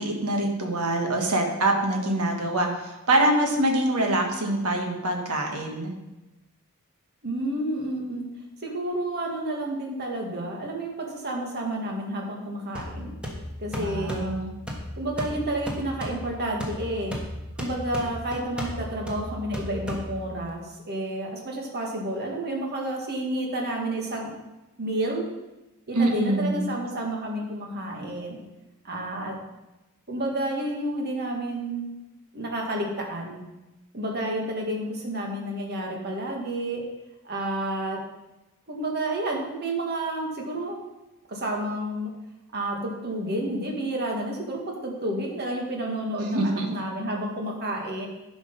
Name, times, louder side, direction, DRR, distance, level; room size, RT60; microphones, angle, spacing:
voice 1, 0.0-5.9 13.7-14.5 25.9-26.7 46.2-46.7, right 1 dB, 85° right, 2 dB, 1.6 m, -25 dB
voice 2, 7.2-8.3 8.6-13.1 13.6-14.3 15.0-17.2 17.6-24.3 24.8-25.3 25.9-28.4 28.8-29.3 30.1-31.9 32.3-33.4 33.9-36.8 37.2-38.0 38.7-40.8 41.3-42.1 42.5-48.1, right 1 dB, 50° right, 0 dB, 1.9 m, -30 dB
sound 1, 12.8-20.5, equal, 5° right, 1.4 m, -35 dB
11.0 x 5.1 x 5.3 m, 1.0 s
head